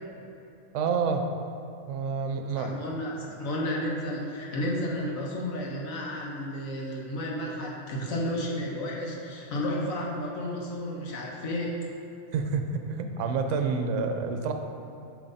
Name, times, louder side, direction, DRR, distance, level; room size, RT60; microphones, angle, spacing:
voice 1, 0.7-1.2 1.9-2.8 12.3-14.5, right 5 dB, 65° right, 5 dB, 0.9 m, -28 dB
voice 2, 2.6-11.8, left 1 dB, 70° left, -2 dB, 1.4 m, -32 dB
7.3 x 5.1 x 4.1 m, 2.9 s
omnidirectional pair, 1.5 m